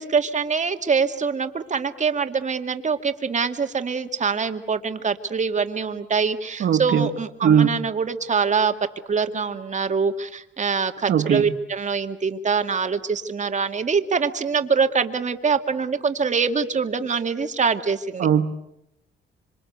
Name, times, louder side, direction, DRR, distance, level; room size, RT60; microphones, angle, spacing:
voice 1, 0.0-8.7 9.1-18.3, right 5 dB, 35° right, 7 dB, 2.3 m, -24 dB
voice 2, 6.6-7.1 7.4-7.7 11.1-11.5 18.2-18.5, right 8 dB, 65° right, 5 dB, 1.4 m, -19 dB
26.5 x 25.5 x 8.1 m, 0.82 s
cardioid pair, 90°, 20 cm